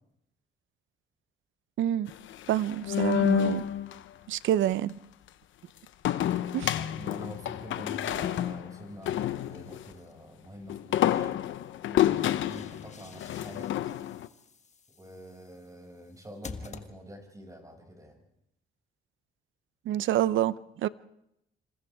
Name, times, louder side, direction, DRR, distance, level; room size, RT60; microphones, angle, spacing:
voice 1, 1.8-2.1 2.5-3.7 4.3-5.0 6.5-6.8 19.9-20.5 20.8-20.9, right 12 dB, 75° right, 0.7 m, -27 dB
sound 1, 2.1-4.0 6.0-9.9 10.7-14.3, left 11 dB, 75° left, 0.9 m, -29 dB
voice 2, 6.7-11.3 11.9-13.7 15.0-18.2, equal, 15° right, 6.6 m, -46 dB
sound 2, 9.0-10.1 12.0-17.4, left 5 dB, 35° left, 1.4 m, -50 dB
27.5 x 26.5 x 3.6 m
cardioid pair, 90°, 20 cm